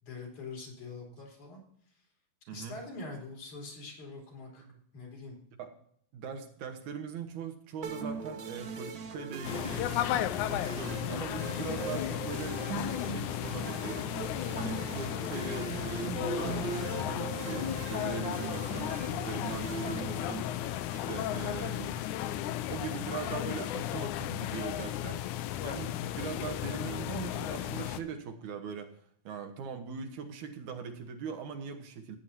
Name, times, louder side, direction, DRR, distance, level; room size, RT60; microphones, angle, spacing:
voice 1, 0.0-1.6 2.5-4.7 4.9-5.4, left 3 dB, 75° left, -1 dB, 4.7 m, -44 dB
voice 2, 2.5-2.8 4.7-4.8 5.6-5.7 6.1-10.2 10.5-14.1 14.6-25.4 25.6-28.9 29.2-32.2, right 6 dB, 80° right, 6 dB, 2.6 m, -41 dB
sound 1, 7.8-20.9, right 4 dB, 65° right, 1.1 m, -40 dB
sound 2, 9.4-28.0, left 12 dB, 90° left, 2.1 m, -34 dB
14.5 x 9.3 x 2.8 m, 0.66 s
omnidirectional pair, 3.5 m